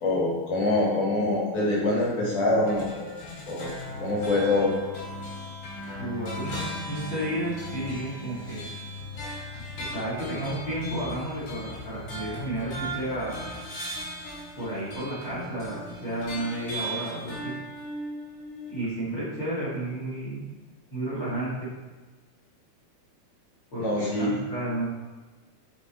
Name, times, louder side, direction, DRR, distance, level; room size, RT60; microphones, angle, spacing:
voice 1, 0.0-3.1 3.5-4.7 23.8-24.3, left 2 dB, 60° left, -5 dB, 2.7 m, -25 dB
sound 1, 2.6-18.9, equal, 80° left, 4.2 m, -38 dB
voice 2, 6.0-8.7 9.9-13.5 14.6-17.5 18.7-20.4 20.9-21.7 23.7-24.9, right 1 dB, 35° left, -8 dB, 2.4 m, -32 dB
8.5 x 4.5 x 4.2 m, 1.3 s
omnidirectional pair, 4.4 m